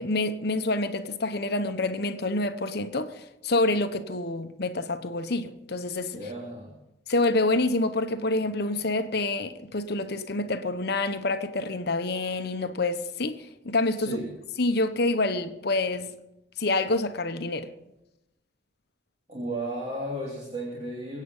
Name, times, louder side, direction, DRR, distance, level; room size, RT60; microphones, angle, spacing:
voice 1, 0.0-6.2 7.1-14.2 14.6-16.1 16.6-17.7, left 2 dB, 55° left, 1.0 m, -27 dB
voice 2, 6.1-6.7 14.0-14.3 19.3-21.2, right 1 dB, 35° right, 2.7 m, -34 dB
23.5 x 8.5 x 5.5 m
head